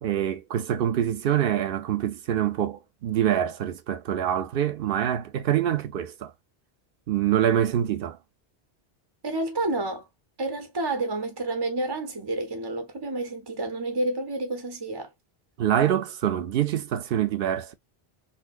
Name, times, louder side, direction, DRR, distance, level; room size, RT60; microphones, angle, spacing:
voice 1, 0.0-6.3 7.1-8.2 15.6-17.7, right 10 dB, 65° right, 0.7 m, -25 dB
voice 2, 9.2-10.1 10.4-15.1, right 2 dB, 30° right, 0.5 m, -29 dB
4.1 x 2.1 x 2.4 m
omnidirectional pair, 1.1 m